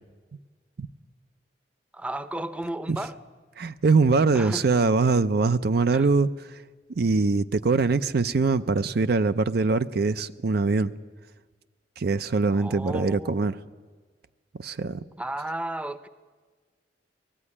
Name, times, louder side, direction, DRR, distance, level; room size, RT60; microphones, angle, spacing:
voice 1, 1.9-3.2 4.3-4.6 5.9-6.0 12.5-13.5 15.2-16.1, right 1 dB, 5° right, 13 dB, 0.7 m, -33 dB
voice 2, 3.6-6.3 7.0-10.9 12.0-13.6 14.6-15.0, right 4 dB, 60° right, 12 dB, 0.5 m, -23 dB
19.0 x 14.5 x 9.8 m, 1.4 s
head